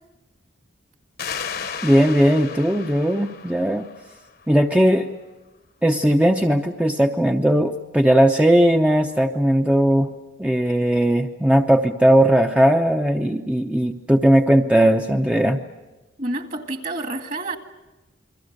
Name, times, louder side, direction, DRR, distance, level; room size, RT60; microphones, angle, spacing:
sound 1, 1.2-4.6, left 6 dB, 50° left, 1.1 m, -34 dB
voice 1, 1.8-3.9 4.5-5.1 5.8-10.1 10.4-15.6, equal, 5° right, 3 dB, 0.7 m, -18 dB
voice 2, 16.2-17.6, right 2 dB, 45° right, 6 dB, 2.0 m, -28 dB
29.0 x 22.5 x 6.6 m, 1.1 s
head